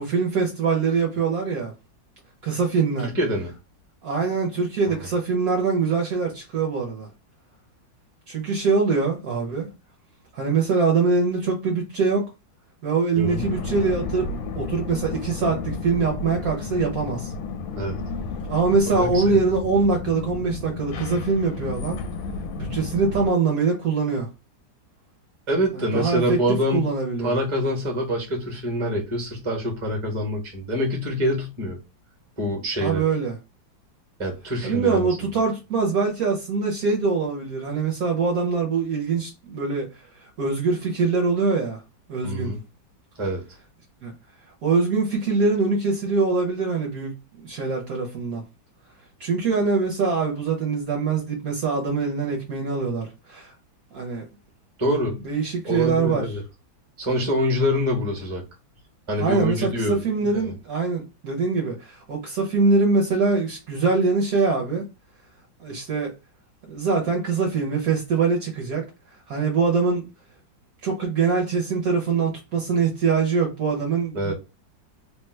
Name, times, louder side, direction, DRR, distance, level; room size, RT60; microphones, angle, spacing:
voice 1, 0.0-1.7 2.4-3.1 4.0-7.1 8.3-9.7 10.3-12.3 12.8-14.3 14.5-17.3 18.5-22.0 22.6-24.3 25.7-27.4 32.8-33.4 34.6-41.8 42.1-42.5 44.0-44.1 44.6-48.4 49.2-53.5 53.9-54.2 55.2-56.3 59.2-64.8 65.6-66.1 66.7-68.9 69.1-70.0 70.8-74.3, right 4 dB, 60° right, 1.0 m, -23 dB
voice 2, 3.1-3.5 13.2-13.5 17.7-18.0 18.9-19.4 25.5-26.9 27.2-31.8 32.4-33.0 34.2-35.4 42.2-42.6 43.2-43.4 54.8-55.2 55.6-56.4 57.0-58.4 59.1-60.5 74.1-74.3, equal, 20° right, 0.8 m, -25 dB
sound 1, 13.2-23.3, left 4 dB, 85° left, 1.3 m, -32 dB
2.9 x 2.2 x 3.2 m
omnidirectional pair, 2.0 m